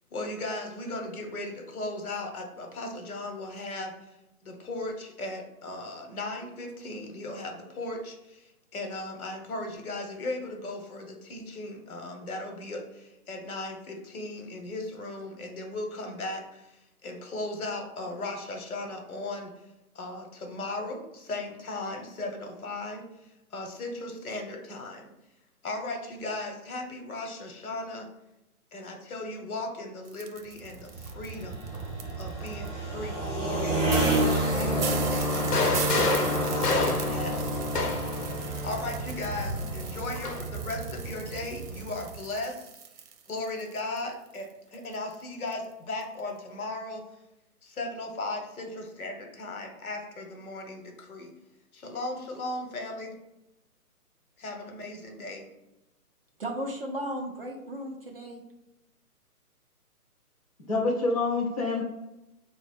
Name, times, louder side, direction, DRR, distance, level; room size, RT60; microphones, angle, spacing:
voice 1, 0.1-3.9 4.4-16.8 17.0-19.5 19.9-25.1 25.6-28.1 28.7-31.6 32.2-35.5 36.2-38.2 38.6-42.7 43.3-47.0 47.6-51.3 51.7-53.2 54.4-55.5, left 2 dB, 70° left, 3 dB, 1.0 m, -37 dB
sound 1, 30.1-32.7 33.3-33.4 33.6-33.7 33.9-44.0 44.3-45.2 45.5-45.7 46.0-46.2, right 7 dB, 85° right, 0.6 m, -39 dB
sound 2, 30.6-42.2, right 1 dB, 5° right, 0.7 m, -30 dB
sound 3, 35.3-38.2 39.4-40.4, left 3 dB, 90° left, 0.7 m, -29 dB
voice 2, 56.4-58.4, right 1 dB, 40° right, 1 dB, 0.4 m, -35 dB
voice 3, 60.6-61.8, left 3 dB, 25° left, -4 dB, 0.5 m, -27 dB
4.2 x 2.0 x 4.2 m, 0.95 s
hypercardioid pair, 150°, 45 cm